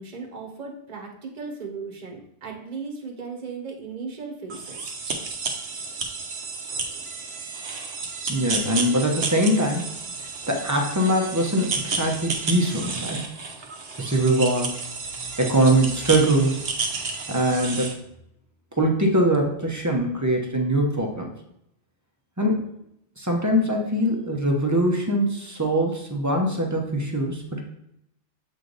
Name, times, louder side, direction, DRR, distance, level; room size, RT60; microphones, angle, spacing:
voice 1, 0.0-4.9, right 4 dB, 40° right, 1 dB, 1.1 m, -36 dB
sound 1, 4.5-17.9, right 4 dB, 60° right, 1.0 m, -31 dB
voice 2, 8.3-10.0 10.5-13.3 13.9-14.8 15.2-16.7 17.3-18.0 18.8-21.3 22.4-22.6 23.2-27.6, right 1 dB, 15° right, 1 dB, 0.8 m, -22 dB
7.5 x 3.3 x 4.0 m, 0.78 s
omnidirectional pair, 1.2 m